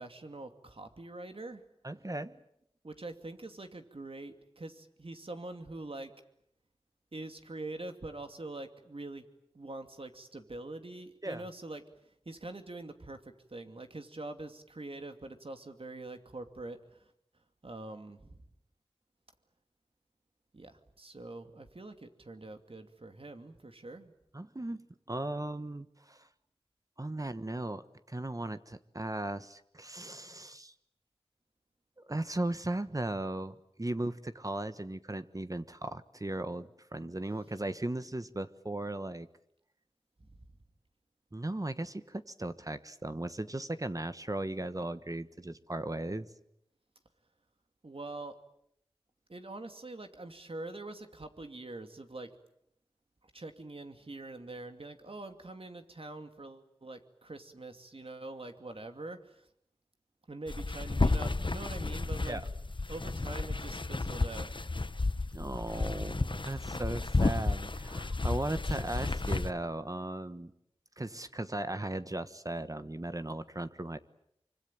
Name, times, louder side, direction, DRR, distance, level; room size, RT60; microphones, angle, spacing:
voice 1, 0.0-1.6 2.8-6.1 7.1-9.2 9.5-11.8 12.3-17.1 17.6-18.4 20.5-24.1 38.0-38.1 40.2-40.4 47.8-48.4 49.3-52.3 53.2-59.5 60.3-62.4 62.9-64.6, right 2 dB, 65° right, 7 dB, 2.6 m, -44 dB
voice 2, 1.8-2.4 11.2-11.4 24.3-26.3 27.0-30.7 32.1-39.3 41.3-46.3 62.2-62.4 65.3-70.5 71.0-74.0, right 1 dB, 35° right, 11 dB, 1.3 m, -37 dB
sound 1, 60.5-69.5, left 3 dB, 50° left, 1.3 m, -32 dB
25.0 x 25.0 x 9.0 m, 0.75 s
wide cardioid pair, 50°, 10 cm